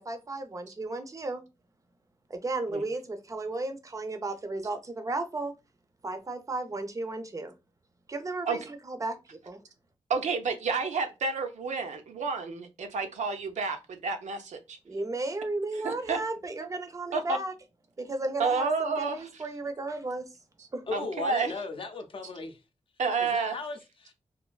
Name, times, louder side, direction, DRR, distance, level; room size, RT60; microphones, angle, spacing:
voice 1, 0.0-1.4 2.3-5.5 6.0-7.5 8.1-9.6 14.9-17.5 18.0-20.3 20.7-20.8, right 2 dB, 30° right, 0.5 m, -34 dB
voice 2, 10.1-14.8 15.8-16.2 16.6-16.7 17.1-17.4 18.4-19.4 20.9-21.5 23.0-23.6, right 4 dB, 85° right, 0.5 m, -30 dB
voice 3, 20.9-22.6 23.2-24.1, left 3 dB, 50° left, 0.5 m, -37 dB
3.1 x 2.5 x 2.3 m
wide cardioid pair, 150°, 12 cm